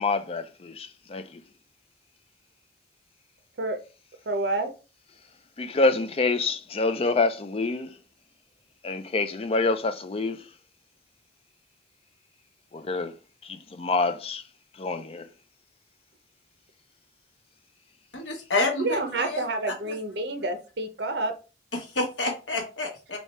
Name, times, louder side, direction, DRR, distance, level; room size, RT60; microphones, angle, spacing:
voice 1, 0.0-1.4 5.6-7.9 8.8-10.5 12.7-13.1 13.4-14.4 14.8-15.3, left 3 dB, 35° left, 0.4 m, -27 dB
voice 2, 4.3-4.7 18.8-21.3, right 2 dB, 65° right, 0.7 m, -28 dB
voice 3, 18.1-19.4 19.9-20.0 21.7-23.2, left 2 dB, 85° left, 1.2 m, -29 dB
3.3 x 2.7 x 4.3 m
head